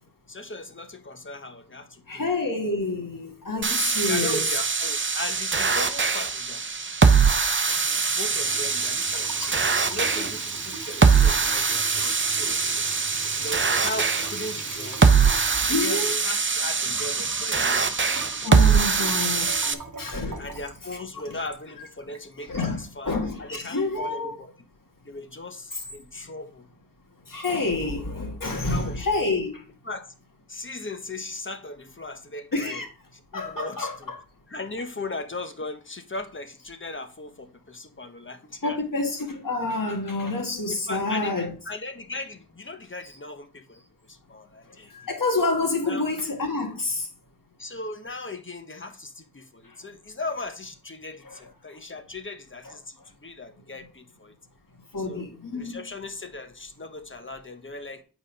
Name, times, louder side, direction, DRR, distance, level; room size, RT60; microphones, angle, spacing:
voice 1, 0.3-2.2 4.0-6.6 7.8-12.6 13.3-15.1 15.8-18.0 18.3-18.9 19.6-19.8 20.4-24.5 25.1-26.7 28.7-29.1 29.8-30.1 30.5-32.8 33.1-34.1 34.5-38.8 40.7-43.8 44.1-44.9 45.8-46.1 47.6-54.3 55.0-55.3 55.5-58.0, left 2 dB, 30° left, 0.9 m, -38 dB
voice 2, 2.1-4.5 7.7-8.0 9.3-9.6 12.4-12.6 15.7-16.1 18.4-19.5 20.0-20.5 21.3-21.4 22.5-24.3 27.3-29.6 32.5-32.9 33.3-34.2 38.6-41.5 44.8-47.1 51.3-51.4 52.7-52.8 54.9-55.8, left 3 dB, 60° left, 1.9 m, -28 dB
sound 1, 3.6-19.7, right 5 dB, 30° right, 0.6 m, -23 dB
Water tap faucet / Sink (filling or washing) / Trickle dribble, 8.1-22.3, right 4 dB, 50° right, 1.3 m, -40 dB
8.1 x 4.0 x 5.3 m
wide cardioid pair, 70°, 37 cm